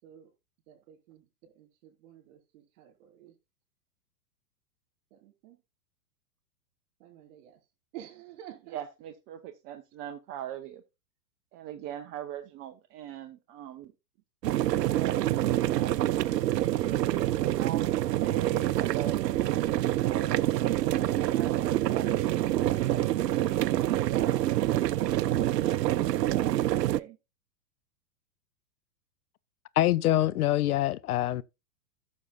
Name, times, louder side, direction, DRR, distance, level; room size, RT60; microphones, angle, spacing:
voice 1, 0.7-3.3 5.1-5.6 7.0-7.6 7.9-8.8, right 12 dB, 50° right, 4.6 m, -50 dB
voice 2, 8.7-10.8 11.5-13.9 14.7-16.0 16.7-19.6 20.1-27.2, right 11 dB, 25° right, 0.7 m, -41 dB
sound 1, 14.4-27.0, right 14 dB, 75° right, 0.6 m, -26 dB
voice 3, 29.8-31.4, left 14 dB, 65° left, 0.6 m, -25 dB
15.0 x 6.4 x 2.4 m
hypercardioid pair, 115°, 49 cm